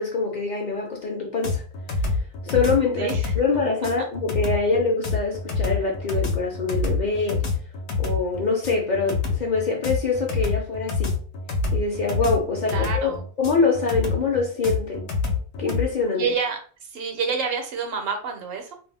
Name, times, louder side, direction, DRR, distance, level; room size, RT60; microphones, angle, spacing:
voice 1, 0.0-1.6 2.4-7.5 8.0-11.2 11.7-15.2 15.6-16.3, left 4 dB, 55° left, 0.5 m, -24 dB
sound 1, 1.4-15.9, left 4 dB, 85° left, 0.9 m, -27 dB
voice 2, 3.0-3.3 12.6-13.2 16.2-18.8, right 5 dB, 65° right, 0.8 m, -28 dB
2.3 x 2.1 x 3.3 m
omnidirectional pair, 1.1 m